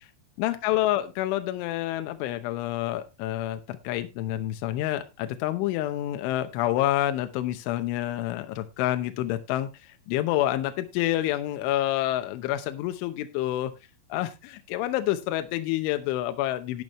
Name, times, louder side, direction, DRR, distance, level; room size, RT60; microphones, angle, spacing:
voice 1, 0.4-9.7 10.1-13.7 14.1-16.8, left 14 dB, 80° left, 9 dB, 3.1 m, -28 dB
12.0 x 11.0 x 3.0 m, 0.25 s
omnidirectional pair, 5.8 m